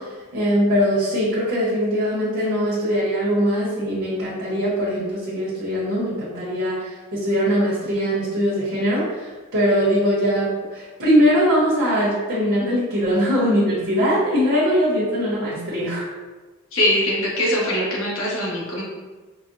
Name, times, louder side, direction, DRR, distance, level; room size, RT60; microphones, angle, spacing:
voice 1, 0.0-16.1, equal, 60° right, -8 dB, 1.0 m, -21 dB
voice 2, 16.7-18.8, left 1 dB, 65° left, -5 dB, 1.1 m, -22 dB
4.9 x 2.1 x 2.6 m, 1.3 s
head